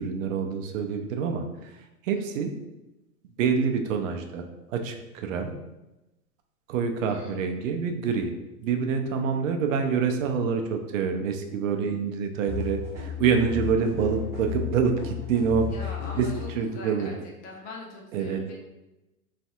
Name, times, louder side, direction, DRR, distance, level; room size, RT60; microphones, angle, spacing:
voice 1, 0.0-1.4 2.0-2.5 3.4-4.4 4.7-5.5 6.7-8.3 8.6-15.7 16.2-16.3 16.6-17.1 18.1-18.4, right 6 dB, 55° right, 5 dB, 0.5 m, -26 dB
voice 2, 2.1-2.5 7.1-7.4 15.7-18.5, left 2 dB, 20° left, -1 dB, 0.4 m, -43 dB
sound 1, 12.5-16.7, left 8 dB, 20° right, 1.3 m, -34 dB
3.2 x 2.6 x 2.3 m, 0.99 s
hypercardioid pair, 115°, 46 cm